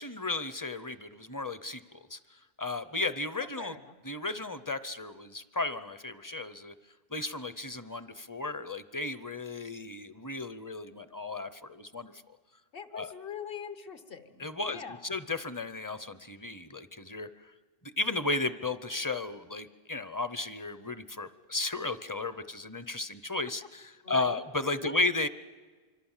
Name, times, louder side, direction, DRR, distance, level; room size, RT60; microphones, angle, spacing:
voice 1, 0.0-2.2 2.6-3.7 4.0-6.7 7.1-12.1 12.9-13.1 14.4-17.3 18.0-25.3, left 2 dB, 20° left, 13 dB, 0.6 m, -34 dB
voice 2, 3.4-3.9 12.7-15.1 24.0-24.4 24.8-25.1, left 7 dB, 65° left, 10 dB, 1.4 m, -43 dB
26.0 x 24.5 x 7.4 m, 1.4 s
omnidirectional pair, 1.0 m